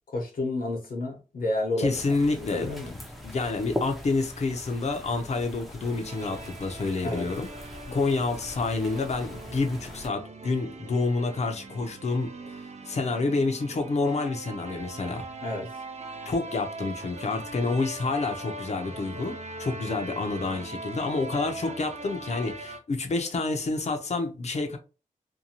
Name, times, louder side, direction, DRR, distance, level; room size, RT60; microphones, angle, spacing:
voice 1, 0.1-3.0 7.0-7.3 7.9-8.0 15.4-15.7, left 2 dB, 90° left, 1.0 m, -31 dB
voice 2, 1.8-3.0 3.2-7.5 7.9-15.3 16.2-24.8, left 3 dB, 50° left, 0.6 m, -28 dB
sound 1, 1.9-10.1, left 1 dB, ahead, 0.6 m, -41 dB
sound 2, 5.8-22.8, right 2 dB, 50° right, 0.5 m, -41 dB
2.7 x 2.2 x 2.8 m
wide cardioid pair, 90°, 14 cm